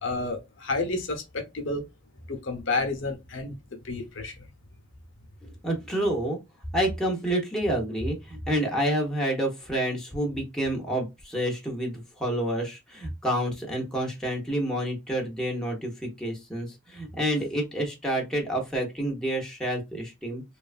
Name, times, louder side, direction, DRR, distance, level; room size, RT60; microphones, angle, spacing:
voice 1, 0.0-1.9 2.3-4.3, left 3 dB, 65° left, 0.7 m, -30 dB
voice 2, 5.6-6.4 6.7-20.4, right 1 dB, 5° left, 0.6 m, -28 dB
3.0 x 2.2 x 2.4 m
head